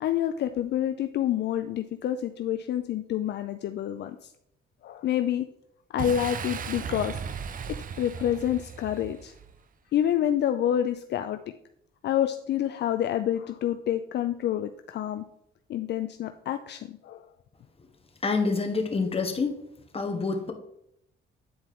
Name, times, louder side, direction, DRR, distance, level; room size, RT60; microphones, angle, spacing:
voice 1, 0.0-4.3 4.8-5.5 5.9-7.2 7.7-9.3 9.9-11.4 12.0-15.2 15.7-17.3, left 11 dB, 60° left, 8 dB, 0.4 m, -28 dB
Boom, 6.0-9.6, right 6 dB, 45° right, 0.6 m, -36 dB
voice 2, 18.2-19.6 19.9-20.5, left 4 dB, 30° left, 4 dB, 1.3 m, -27 dB
9.3 x 4.3 x 3.7 m, 0.77 s
cardioid pair, 90°, 20 cm